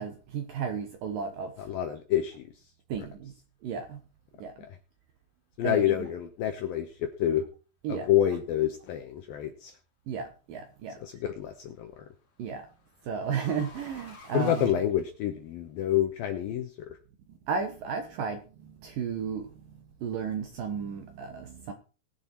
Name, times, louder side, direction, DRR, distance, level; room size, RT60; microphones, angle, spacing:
voice 1, 0.0-1.7 2.9-3.3 3.6-4.0 4.4-4.5 5.6-6.1 7.8-8.1 10.1-11.0 12.4-12.7 13.0-14.8 17.3-21.7, right 6 dB, 70° right, 6 dB, 2.2 m, -34 dB
voice 2, 1.6-2.5 5.6-7.5 7.9-9.7 11.0-12.1 14.3-17.0, left 11 dB, 75° left, 7 dB, 2.2 m, -28 dB
sound 1, 9.7-10.2 11.6-15.6, left 4 dB, 40° left, 2.7 m, -53 dB
20.0 x 7.1 x 4.4 m, 0.35 s
omnidirectional pair, 5.3 m